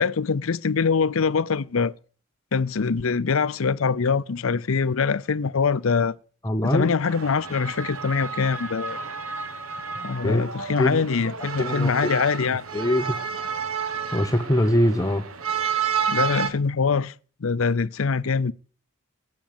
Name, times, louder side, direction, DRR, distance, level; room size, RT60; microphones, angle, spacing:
voice 1, 0.0-1.9 2.5-6.2 6.7-9.0 10.0-12.6 16.1-17.1 17.4-18.5, left 5 dB, 75° left, 0.6 m, -23 dB
voice 2, 6.4-6.9 10.2-10.4 10.8-11.0 11.6-11.9 12.7-13.2 14.1-15.2, left 1 dB, 15° left, 0.9 m, -22 dB
sound 1, 7.0-16.5, right 6 dB, 85° right, 1.4 m, -30 dB
12.5 x 8.2 x 9.0 m
head